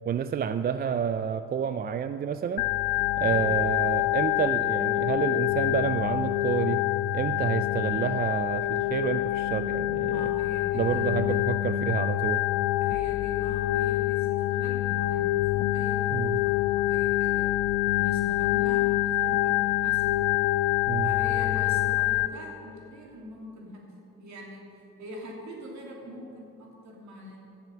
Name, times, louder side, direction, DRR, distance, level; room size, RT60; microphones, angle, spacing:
voice 1, 0.1-2.6 3.2-6.8 7.1-10.3 10.7-12.4 16.1-16.4 20.9-21.1, right 7 dB, 30° right, 11 dB, 0.4 m, -29 dB
Organ, 2.6-22.3, left 16 dB, 75° left, 0.5 m, -26 dB
voice 2, 10.0-11.4 12.8-17.5 17.9-19.6 19.8-20.0 21.0-23.9 24.2-24.6 25.0-27.4, equal, 55° right, -1 dB, 3.1 m, -43 dB
12.0 x 7.0 x 7.1 m, 2.8 s
supercardioid pair, 75°, 34 cm